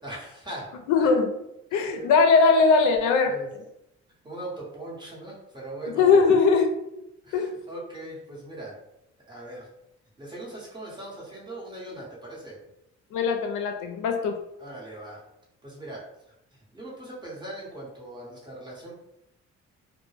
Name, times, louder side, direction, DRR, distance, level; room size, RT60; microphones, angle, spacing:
voice 1, 0.0-0.7 1.0-1.1 1.7-2.1 3.3-3.5 4.2-6.0 7.2-8.8 9.3-9.7 10.2-12.6 14.6-15.2 15.6-16.0 16.5-19.0, right 1 dB, 15° right, -5 dB, 1.0 m, -40 dB
voice 2, 0.9-1.3 1.7-3.6 5.9-6.7 7.3-7.5 13.1-14.4, left 4 dB, 85° left, 4 dB, 0.5 m, -20 dB
2.1 x 2.1 x 3.2 m, 0.84 s
cardioid pair, 90°, 30 cm